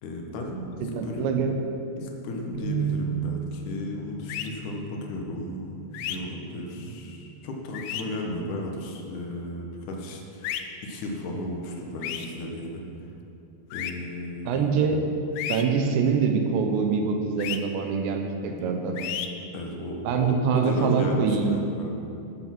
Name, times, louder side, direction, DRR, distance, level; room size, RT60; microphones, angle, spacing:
voice 1, 0.0-1.5 2.0-10.5 10.8-12.8 13.7-14.9 19.5-21.9, left 1 dB, 65° left, 1 dB, 2.2 m, -34 dB
voice 2, 0.8-1.6 14.5-15.0 15.5-19.0 20.0-21.5, right 5 dB, 80° right, 4 dB, 3.2 m, -24 dB
sound 1, 2.5-8.8, right 7 dB, 50° right, 2.0 m, -36 dB
sound 2, 4.3-4.5 5.9-6.2 7.7-8.0 10.4-10.6 12.0-12.3 13.7-13.9 15.4-15.6 17.4-17.6 19.0-19.3, left 11 dB, 80° left, 2.6 m, -32 dB
14.5 x 7.0 x 6.0 m, 2.8 s
omnidirectional pair, 5.0 m